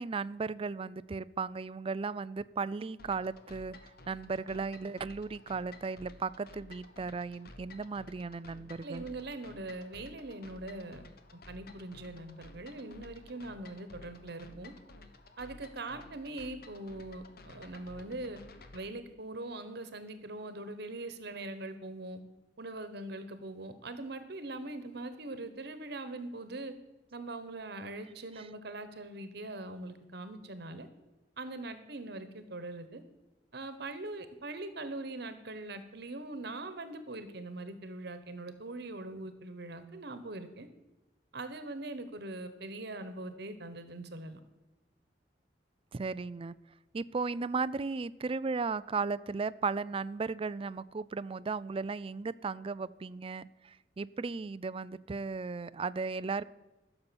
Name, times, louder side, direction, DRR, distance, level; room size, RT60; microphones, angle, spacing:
voice 1, 0.0-3.8 4.1-9.0 28.4-28.5 45.9-46.5 46.9-56.4, right 4 dB, 30° right, 17 dB, 0.4 m, -36 dB
sound 1, 3.0-18.9, left 2 dB, 60° left, 1.2 m, -53 dB
voice 2, 8.8-11.0 11.5-14.7 15.4-18.4 18.7-22.2 22.6-26.7 27.1-30.9 31.4-33.0 33.5-40.7 41.3-44.4, right 2 dB, 65° right, 10 dB, 1.2 m, -42 dB
14.5 x 6.9 x 7.0 m, 1.1 s
head